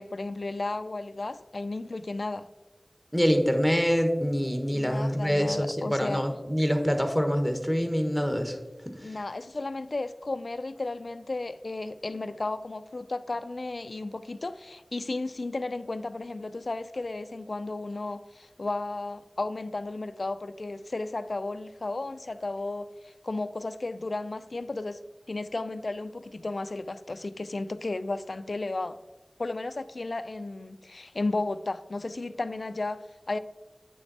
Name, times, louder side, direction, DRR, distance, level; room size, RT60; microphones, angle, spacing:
voice 1, 0.0-2.5 4.7-6.2 9.0-25.0 25.3-29.0 29.4-33.4, left 2 dB, 85° left, 0.4 m, -34 dB
voice 2, 3.1-8.6 8.9-9.1, equal, ahead, 1.3 m, -25 dB
9.2 x 6.6 x 4.1 m
wide cardioid pair, 50°, 0 cm